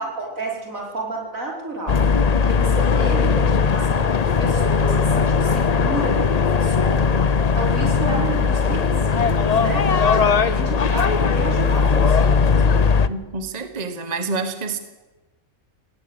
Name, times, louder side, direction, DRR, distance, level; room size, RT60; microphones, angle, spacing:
voice 1, 0.0-2.0 2.3-7.0 7.5-12.8, right 2 dB, 75° right, -1 dB, 5.5 m, -31 dB
sound 1, 1.9-13.1, left 5 dB, 40° left, 0.6 m, -18 dB
voice 2, 13.1-14.8, right 4 dB, 30° right, 8 dB, 1.4 m, -28 dB
18.5 x 17.5 x 8.1 m, 1.2 s
omnidirectional pair, 1.4 m